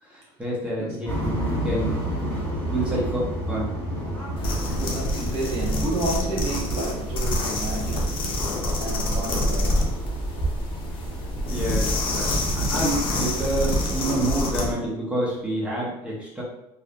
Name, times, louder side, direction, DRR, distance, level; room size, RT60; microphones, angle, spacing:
voice 1, 0.0-1.9 2.7-3.2 3.5-3.7 11.5-16.4, right 1 dB, 10° right, -6 dB, 0.9 m, -28 dB
sound 1, 1.1-14.3, equal, 15° left, 1.3 m, -32 dB
sound 2, 4.4-14.7, left 1 dB, 40° left, 0.6 m, -26 dB
voice 2, 4.8-8.1 8.8-9.8 14.0-14.2, right 1 dB, 65° right, -3 dB, 1.1 m, -31 dB
2.7 x 2.4 x 2.3 m, 0.88 s
cardioid pair, 130°, 13 cm